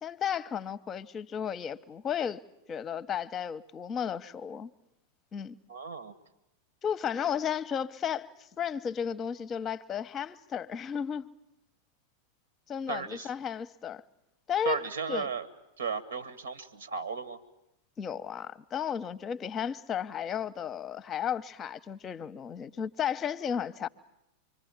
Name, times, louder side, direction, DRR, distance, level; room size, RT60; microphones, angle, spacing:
voice 1, 0.0-2.4 2.7-4.7 5.3-5.6 6.8-8.3 8.6-11.3 12.7-14.0 14.5-15.3 18.0-23.9, left 8 dB, 25° left, 0.9 m, -34 dB
voice 2, 5.7-6.1 12.9-13.3 14.7-15.5 15.8-17.4, right 6 dB, 70° right, 1.8 m, -35 dB
26.0 x 23.5 x 8.6 m
figure-of-eight pair, 90°, 0 cm